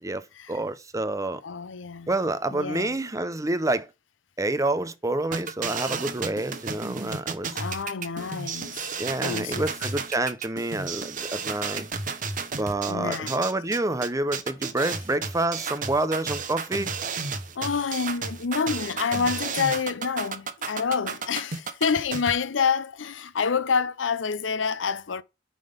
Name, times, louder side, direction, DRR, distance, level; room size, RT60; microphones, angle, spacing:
voice 1, 0.0-1.4 2.1-3.9 4.4-7.6 9.0-11.9 12.6-16.9, right 2 dB, 15° right, 0.6 m, -28 dB
voice 2, 1.4-2.1 2.5-3.0 7.5-8.8 9.2-9.7 12.9-13.4 17.6-25.2, left 5 dB, 80° left, 0.6 m, -28 dB
sound 1, 5.3-22.3, right 5 dB, 45° right, 1.1 m, -32 dB
9.1 x 3.8 x 5.2 m
head